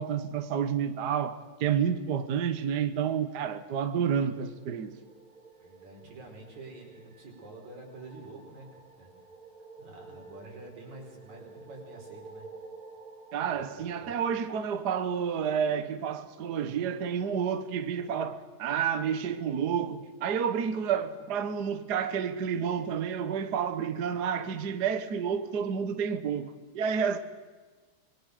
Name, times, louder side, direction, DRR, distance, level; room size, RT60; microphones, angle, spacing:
voice 1, 0.0-4.9 13.3-27.2, right 7 dB, 55° right, 1.2 m, -30 dB
sound 1, 4.2-15.2, right 3 dB, 25° right, 2.7 m, -52 dB
voice 2, 5.6-8.7 9.0-9.1 9.8-12.5 13.5-13.6 14.0-14.1, right 2 dB, 70° right, 6.0 m, -47 dB
27.5 x 21.5 x 6.7 m
omnidirectional pair, 3.3 m